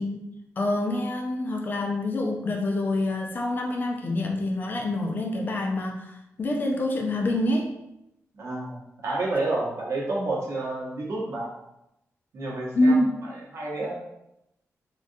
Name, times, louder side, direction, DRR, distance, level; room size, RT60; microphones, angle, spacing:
voice 1, 0.0-7.7 12.7-13.1, left 1 dB, 35° left, 1 dB, 0.4 m, -26 dB
voice 2, 8.4-11.5 12.3-14.0, right 2 dB, 65° right, -4 dB, 0.9 m, -30 dB
3.6 x 2.3 x 2.6 m, 0.86 s
wide cardioid pair, 180°, 5 cm